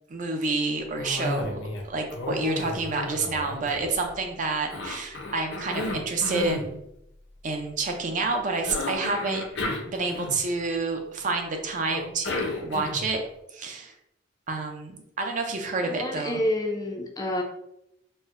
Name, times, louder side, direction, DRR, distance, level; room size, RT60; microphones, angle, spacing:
voice 1, 0.1-1.6 1.9-6.8 7.4-9.4 9.9-13.2 13.5-13.9 14.5-16.4, right 3 dB, 40° right, 4 dB, 0.4 m, -29 dB
Cough, 1.0-1.8 2.1-4.2 4.7-6.7 8.6-10.7 11.9-13.2, left 2 dB, 65° left, 0.6 m, -33 dB
voice 2, 15.8-17.4, left 1 dB, 20° left, 1 dB, 0.4 m, -28 dB
4.2 x 2.0 x 2.5 m, 0.80 s
head